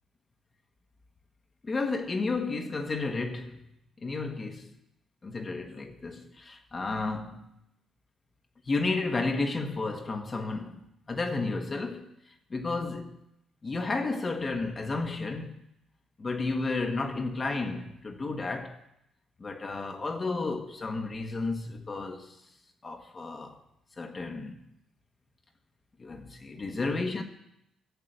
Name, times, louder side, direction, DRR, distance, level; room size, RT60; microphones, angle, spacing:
voice 1, 1.6-3.7 4.0-4.7 5.2-7.6 8.7-10.8 11.1-12.1 12.5-13.2 13.6-15.5 16.2-18.8 19.4-22.4 22.8-23.6 24.0-24.6 26.0-27.2, left 3 dB, 30° left, 1.2 m, -32 dB
11.5 x 7.5 x 6.6 m
cardioid pair, 90°, 0 cm